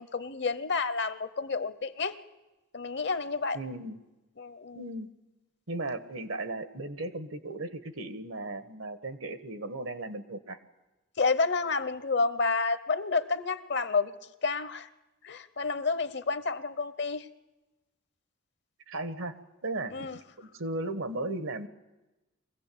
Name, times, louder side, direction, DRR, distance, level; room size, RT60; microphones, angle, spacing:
voice 1, 0.0-2.1 2.7-3.6 4.4-4.8 11.2-14.1 14.4-14.9 15.2-17.2 19.9-20.2, left 4 dB, 55° left, 13 dB, 0.9 m, -30 dB
voice 2, 3.5-4.0 4.7-5.1 5.7-10.6 18.9-19.3 19.6-20.1 20.4-21.7, right 2 dB, 80° right, 11 dB, 1.4 m, -36 dB
23.0 x 16.0 x 8.6 m, 1.1 s
head